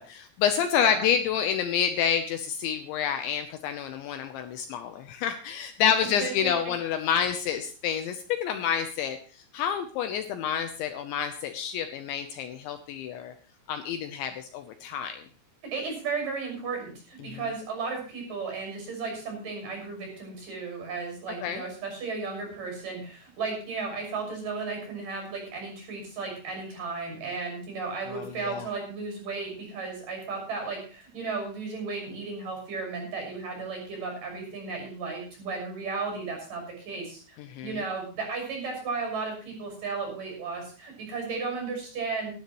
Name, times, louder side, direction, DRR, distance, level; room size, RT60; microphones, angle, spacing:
voice 1, 0.0-13.3 13.7-15.2 17.2-17.4 21.4-21.6 28.1-28.7 37.4-37.8, left 8 dB, 75° left, 7 dB, 2.9 m, -28 dB
voice 2, 6.0-6.5 15.7-42.3, right 4 dB, 40° right, 2 dB, 7.8 m, -34 dB
19.5 x 13.0 x 3.1 m, 0.38 s
omnidirectional pair, 5.9 m